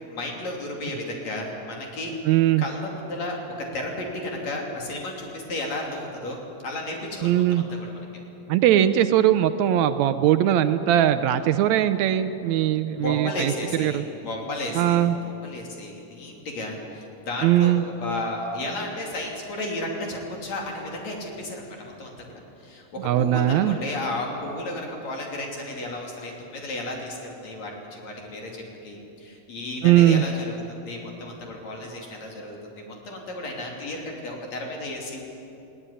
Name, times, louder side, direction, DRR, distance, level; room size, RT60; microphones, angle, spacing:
voice 1, 0.1-2.1 2.6-7.9 12.9-22.3 22.6-35.2, left 1 dB, 55° left, 0 dB, 4.1 m, -33 dB
voice 2, 2.3-2.7 7.2-7.6 8.5-13.5 13.8-14.0 14.7-15.2 17.4-17.8 23.0-23.8 29.8-30.2, right 11 dB, 80° right, 11 dB, 1.7 m, -20 dB
19.5 x 17.5 x 9.9 m, 2.9 s
omnidirectional pair, 3.9 m